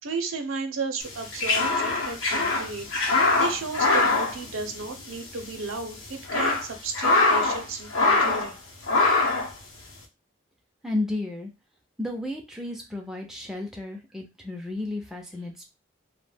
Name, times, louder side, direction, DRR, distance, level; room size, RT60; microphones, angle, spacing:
voice 1, 0.0-8.6, right 4 dB, 90° right, 0.6 m, -34 dB
sound 1, 1.1-5.2 5.4-5.5 6.1-7.6 7.9-8.5 8.9-9.5, left 3 dB, 85° left, 0.7 m, -23 dB
voice 2, 10.8-11.5 12.0-15.6, left 2 dB, ahead, 0.3 m, -32 dB
2.2 x 2.0 x 3.3 m
head